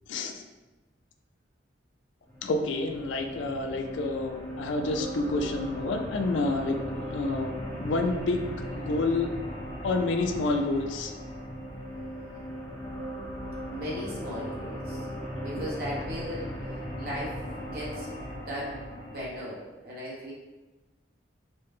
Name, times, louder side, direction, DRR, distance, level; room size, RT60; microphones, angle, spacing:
voice 1, 0.1-0.4 2.4-9.3 9.8-11.1, left 2 dB, 75° left, 5 dB, 0.4 m, -29 dB
sound 1, 2.3-19.3, equal, 20° left, 0.8 m, -38 dB
voice 2, 13.7-20.3, equal, 50° right, -6 dB, 1.2 m, -38 dB
4.1 x 2.1 x 3.5 m, 1.1 s
head